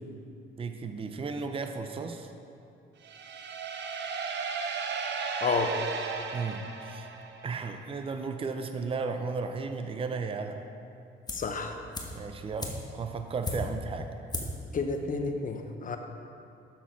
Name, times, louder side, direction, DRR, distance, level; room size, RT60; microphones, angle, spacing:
voice 1, 0.6-2.3 6.3-7.1 7.4-10.6 12.1-14.1, right 4 dB, 30° right, 6 dB, 0.5 m, -34 dB
sound 1, 3.0-7.7, right 5 dB, 60° right, 0.7 m, -35 dB
voice 2, 5.4-5.7 11.3-11.7 14.7-16.0, left 4 dB, 40° left, 5 dB, 0.8 m, -30 dB
sound 2, 11.3-11.6 11.9-13.9 14.3-14.7 14.9-15.0, left 2 dB, 20° left, 1.1 m, -36 dB
7.3 x 5.8 x 5.7 m, 2.6 s
cardioid pair, 90°, 20 cm